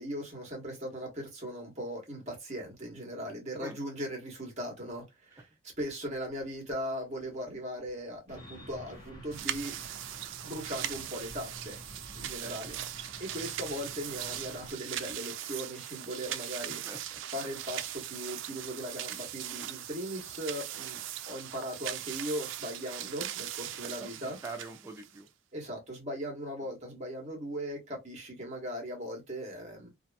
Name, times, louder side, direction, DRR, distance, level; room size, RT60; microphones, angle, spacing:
voice 1, 0.0-5.5 5.8-9.7 10.4-11.8 12.1-12.8 13.2-16.8 17.3-24.4 25.5-29.9, equal, 35° right, 1.1 m, -39 dB
sound 1, 8.3-14.7, equal, 20° left, 0.9 m, -49 dB
sound 2, 9.3-25.3, right 12 dB, 70° right, 0.3 m, -40 dB
voice 2, 16.7-17.2 24.0-25.3, right 3 dB, 15° right, 0.5 m, -44 dB
2.8 x 2.5 x 2.2 m
head